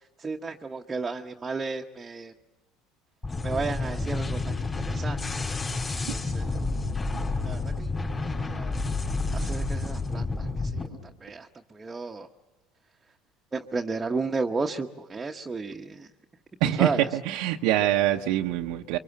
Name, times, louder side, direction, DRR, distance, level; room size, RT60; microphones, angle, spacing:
voice 1, 0.2-2.3 3.4-4.5 4.9-5.5 6.1-6.5 7.4-7.9 8.2-8.8 9.3-10.9 11.2-12.3 13.5-16.1 16.8-17.1, right 4 dB, 20° right, 2 dB, 1.0 m, -33 dB
sound 1, 3.2-10.9, left 3 dB, 25° left, 4.4 m, -30 dB
voice 2, 16.6-19.0, right 13 dB, 75° right, 2 dB, 0.8 m, -24 dB
24.0 x 24.0 x 7.2 m, 1.1 s
supercardioid pair, 100°, 0 cm